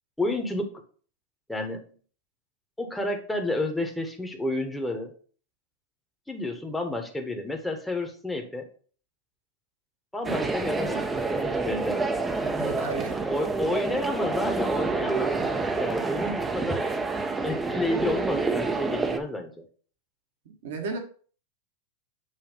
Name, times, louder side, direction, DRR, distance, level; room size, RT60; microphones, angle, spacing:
voice 1, 0.2-0.8 1.5-1.9 2.8-5.1 6.3-8.7 10.1-12.1 13.3-16.8 17.4-19.6, left 1 dB, 5° left, 3 dB, 1.1 m, -30 dB
sound 1, 10.2-19.2, right 3 dB, 15° right, 0.7 m, -28 dB
voice 2, 12.6-13.3 16.2-16.3 20.6-21.0, right 4 dB, 70° right, 4 dB, 1.5 m, -33 dB
7.2 x 2.6 x 5.2 m, 0.43 s
hypercardioid pair, 105°, 0 cm